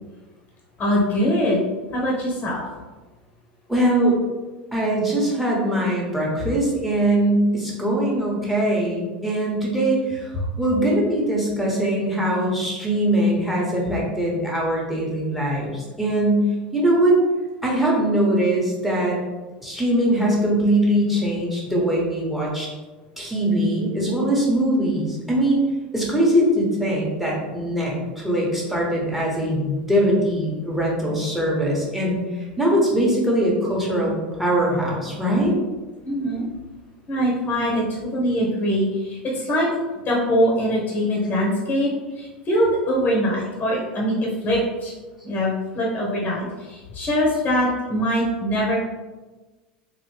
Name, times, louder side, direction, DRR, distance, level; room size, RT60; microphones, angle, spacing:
voice 1, 0.8-1.6 1.9-2.6 36.0-36.4 37.1-39.7 40.1-41.9 42.2-44.9 45.2-48.8, equal, 30° left, -3 dB, 1.0 m, -22 dB
voice 2, 3.7-4.2 4.7-16.4 16.7-17.2 17.6-19.2 19.6-22.7 23.2-25.6 25.9-28.0 28.2-32.2 32.6-34.1 34.4-35.6, right 1 dB, 5° right, -3 dB, 1.3 m, -21 dB
4.0 x 2.7 x 3.3 m, 1.2 s
figure-of-eight pair, 80°, 5 cm